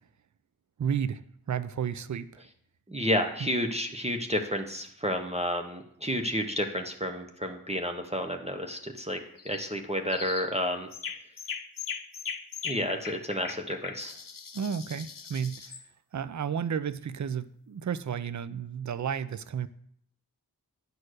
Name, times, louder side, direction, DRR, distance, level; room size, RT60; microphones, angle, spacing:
voice 1, 0.8-1.2 1.5-2.4 3.4-3.5 14.5-15.7 16.1-19.7, right 7 dB, 45° right, 15 dB, 0.5 m, -32 dB
voice 2, 2.9-9.2 9.4-10.9 12.6-14.2, equal, 15° right, 4 dB, 0.9 m, -31 dB
sound 1, 9.4-9.7 10.1-10.5 10.9-15.8, left 6 dB, 55° left, 0.7 m, -39 dB
9.7 x 4.4 x 6.3 m, 0.68 s
wide cardioid pair, 45°, 40 cm